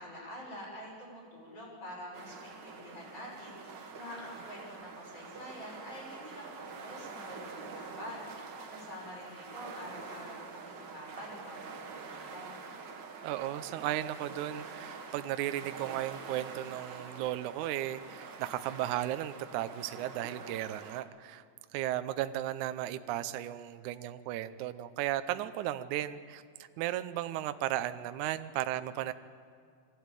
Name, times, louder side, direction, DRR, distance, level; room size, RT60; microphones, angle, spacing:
voice 1, 0.0-8.3 8.7-12.5, left 1 dB, 45° left, -5 dB, 7.3 m, -47 dB
sound 1, 2.1-21.0, right 4 dB, 60° right, 1.1 m, -46 dB
voice 2, 13.2-21.4 21.7-26.4 26.8-29.1, right 13 dB, 75° right, 11 dB, 1.9 m, -35 dB
23.5 x 16.0 x 9.0 m, 2.3 s
omnidirectional pair, 4.0 m